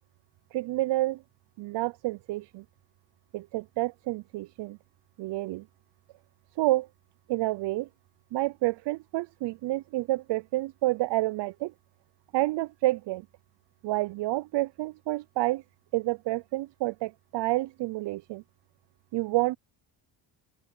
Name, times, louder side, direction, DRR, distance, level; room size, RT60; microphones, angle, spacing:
voice 1, 0.5-1.2 1.6-2.6 3.3-4.8 5.2-5.6 6.6-6.9 7.3-7.9 8.3-11.7 12.3-13.3 13.8-15.6 15.9-18.4 19.1-19.6, right 18 dB, 65° right, 0.6 m, -29 dB
open air
cardioid pair, 90°, 46 cm